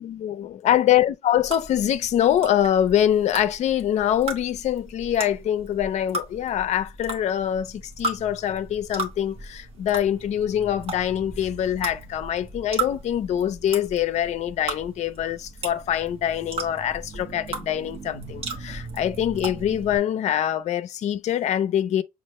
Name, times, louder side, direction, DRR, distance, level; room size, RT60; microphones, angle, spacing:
voice 1, 0.0-22.0, left 10 dB, 55° left, 0.4 m, -24 dB
sound 1, 1.4-20.0, right 3 dB, 45° right, 1.1 m, -36 dB
6.3 x 2.4 x 3.0 m
cardioid pair, 175°, 14 cm